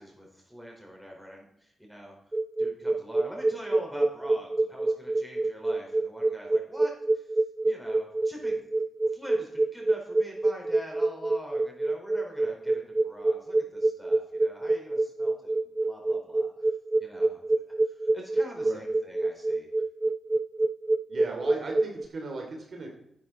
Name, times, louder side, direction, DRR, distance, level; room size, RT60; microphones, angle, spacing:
voice 1, 0.0-2.2 2.6-7.3 7.6-8.6 9.1-16.5 17.0-17.4 17.8-19.7, equal, ahead, -1 dB, 5.0 m, -45 dB
sound 1, 2.3-22.1, right 2 dB, 20° right, 0.3 m, -26 dB
voice 2, 21.1-22.9, right 3 dB, 60° right, 2 dB, 2.9 m, -37 dB
11.5 x 9.2 x 4.4 m, 0.74 s
cardioid pair, 60°, 0 cm